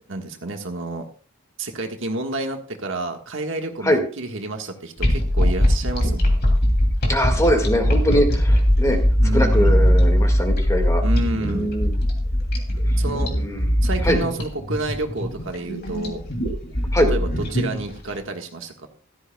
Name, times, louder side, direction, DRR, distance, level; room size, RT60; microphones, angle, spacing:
voice 1, 0.1-1.1 1.6-6.4 9.2-9.7 11.0-11.7 13.0-13.3 13.8-16.2 17.1-18.9, right 2 dB, 60° right, 4 dB, 1.6 m, -30 dB
sound 1, 5.0-18.1, equal, 50° left, 2.9 m, -20 dB
voice 2, 7.1-9.0 9.3-11.0 11.4-12.0 13.4-13.7 14.0-14.2 16.9-17.1, equal, 15° left, 4 dB, 1.9 m, -22 dB
15.5 x 13.0 x 2.3 m, 0.40 s
head